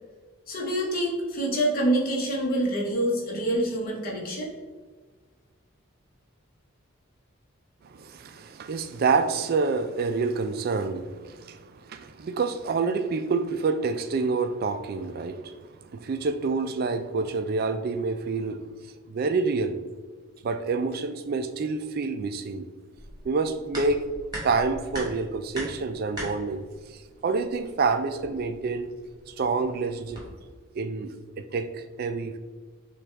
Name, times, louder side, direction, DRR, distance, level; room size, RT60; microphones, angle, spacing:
voice 1, 0.5-4.5, right 1 dB, 45° left, 1.0 m, -26 dB
voice 2, 7.8-18.7 19.1-19.8 20.4-22.7 23.2-24.0 24.4-26.6 26.9-28.9 29.3-30.2 30.8-32.4, right 4 dB, 45° right, 0.3 m, -28 dB
sound 1, 22.9-30.6, equal, 20° right, 1.4 m, -42 dB
6.1 x 2.4 x 3.3 m
head